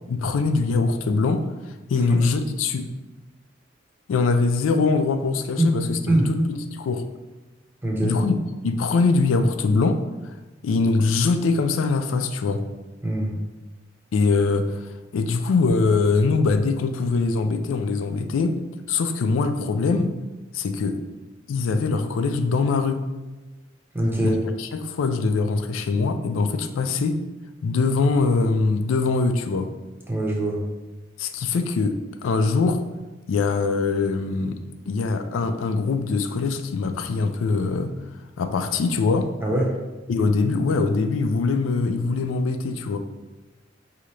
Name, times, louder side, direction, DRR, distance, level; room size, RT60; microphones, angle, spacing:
voice 1, 0.1-1.5 1.9-2.9 4.1-6.0 6.3-7.0 8.0-8.4 8.6-10.0 10.6-12.6 14.1-18.6 18.9-20.1 20.5-21.0 21.5-23.0 24.2-27.2 27.6-29.7 31.2-32.8 33.3-34.6 34.9-37.9 38.4-39.3 40.1-43.0, left 4 dB, 85° left, 8 dB, 0.3 m, -22 dB
voice 2, 7.8-8.2 13.0-13.3 23.9-24.4 30.1-30.6 39.4-39.7, right 1 dB, 10° right, -2 dB, 0.7 m, -23 dB
4.9 x 2.8 x 3.1 m, 1.2 s
head